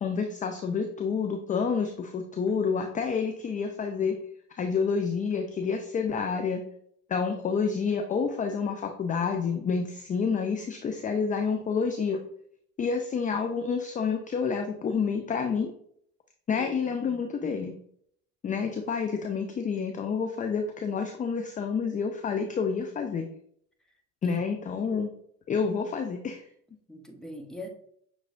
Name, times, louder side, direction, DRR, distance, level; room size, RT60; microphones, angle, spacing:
voice 1, 0.0-4.2 4.6-6.6 7.1-12.2 12.8-15.7 16.5-17.8 18.4-23.3 24.2-25.1 25.5-26.4, left 5 dB, 20° left, 5 dB, 0.3 m, -29 dB
voice 2, 17.1-17.6 24.2-24.4 26.9-27.7, left 1 dB, ahead, 3 dB, 0.9 m, -42 dB
6.0 x 3.3 x 2.5 m, 0.65 s
hypercardioid pair, 60°, 47 cm